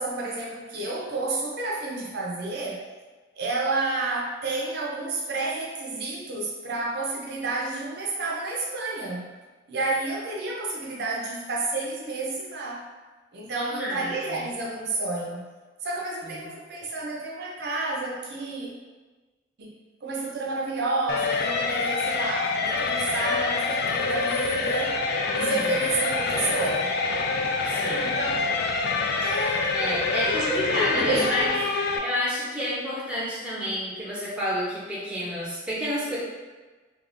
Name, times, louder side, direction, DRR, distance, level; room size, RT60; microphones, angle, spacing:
voice 1, 0.0-2.8 3.4-9.3 9.7-12.8 13.3-15.5 15.8-18.7 19.6-19.7 20.0-25.0 25.3-26.9 28.0-28.6 29.2-29.8 30.2-31.3, right 2 dB, 55° right, -3 dB, 0.5 m, -30 dB
voice 2, 13.6-14.4 16.2-16.5 25.3-25.7 27.6-28.2 29.7-31.5 32.0-36.2, left 1 dB, 5° right, -6 dB, 0.6 m, -30 dB
sound 1, 21.1-32.0, left 3 dB, 55° left, 0.3 m, -26 dB
2.4 x 2.3 x 3.4 m, 1.3 s
head